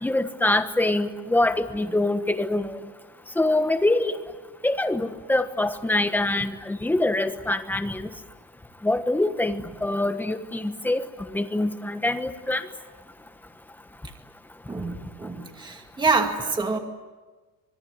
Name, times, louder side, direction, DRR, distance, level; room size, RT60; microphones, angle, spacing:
voice 1, 0.0-2.8 3.4-4.2 4.6-8.0 8.8-11.0 11.3-12.7, left 2 dB, 5° left, 8 dB, 1.3 m, -24 dB
voice 2, 15.2-16.8, right 3 dB, 10° right, 3 dB, 2.2 m, -25 dB
26.0 x 22.0 x 9.6 m, 1.3 s
cardioid pair, 175°, 36 cm